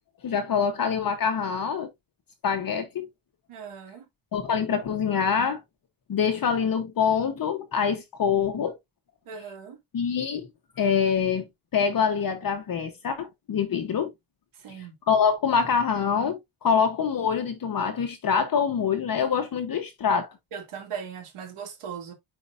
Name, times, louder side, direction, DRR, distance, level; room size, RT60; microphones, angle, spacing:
voice 1, 0.2-1.9 2.4-3.1 4.3-5.6 6.1-8.8 9.9-10.5 10.8-11.5 11.7-14.1 14.7-20.3, left 6 dB, 45° left, 1.0 m, -25 dB
voice 2, 3.5-4.0 9.3-9.8 14.6-14.9 20.5-22.1, right 7 dB, 80° right, 2.4 m, -38 dB
9.6 x 4.7 x 2.5 m
wide cardioid pair, 165°, 49 cm